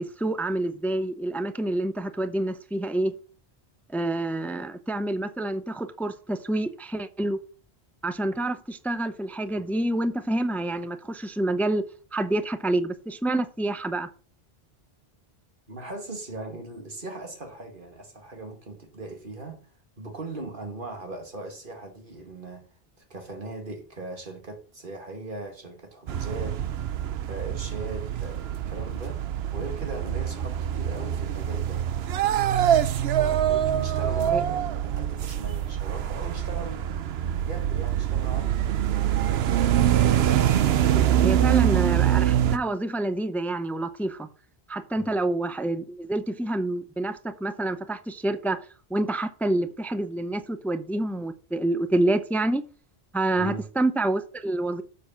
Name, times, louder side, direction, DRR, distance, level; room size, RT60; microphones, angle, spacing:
voice 1, 0.0-3.1 3.9-7.4 8.0-11.8 12.1-14.1 34.3-34.4 41.2-44.3 44.7-48.6 48.9-52.6 53.1-54.8, right 1 dB, ahead, 0.5 m, -27 dB
voice 2, 15.7-19.6 20.0-22.6 23.1-26.6 27.2-29.2 29.5-31.8 33.1-36.9 37.2-38.6 44.9-45.2 53.3-53.7, right 2 dB, 55° right, 2.2 m, -39 dB
sound 1, 26.1-42.6, right 10 dB, 80° right, 0.9 m, -24 dB
7.4 x 6.5 x 5.7 m
omnidirectional pair, 1.0 m